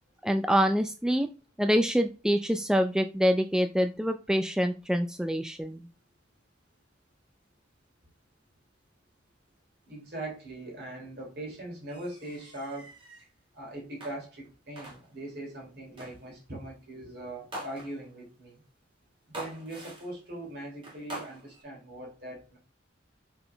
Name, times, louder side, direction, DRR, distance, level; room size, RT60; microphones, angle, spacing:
voice 1, 0.2-1.3 1.6-5.9, equal, 5° right, 7 dB, 0.4 m, -26 dB
voice 2, 9.9-12.9 13.5-18.6 19.3-22.6, right 1 dB, 55° right, -1 dB, 3.3 m, -41 dB
sound 1, 11.9-13.3 14.0-14.5 14.8-15.3 16.0-16.3 17.5-18.2 19.3-20.2 20.8-21.6, right 1 dB, 25° right, 3.0 m, -44 dB
5.9 x 5.7 x 3.4 m, 0.32 s
head